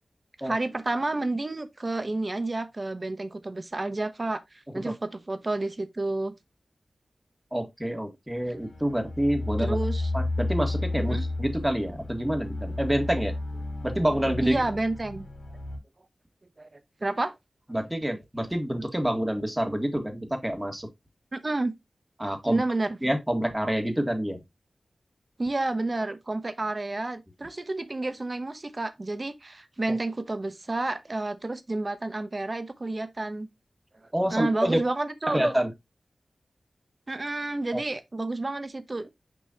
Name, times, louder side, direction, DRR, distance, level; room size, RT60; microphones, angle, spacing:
voice 1, 0.4-6.4 9.6-10.1 11.0-11.2 14.4-15.3 16.6-16.7 17.0-17.4 21.3-21.7 22.4-23.0 25.4-33.5 34.3-35.4 37.1-39.1, right 2 dB, 40° right, 0.9 m, -30 dB
voice 2, 7.5-9.8 10.1-13.3 13.8-14.6 17.7-20.9 22.2-22.6 23.0-24.4 34.1-34.8 35.3-35.7 37.7-37.8, equal, 10° right, 1.7 m, -27 dB
sound 1, 8.4-15.8, left 2 dB, 75° left, 2.2 m, -32 dB
6.2 x 5.4 x 2.9 m
wide cardioid pair, 65°, 0 cm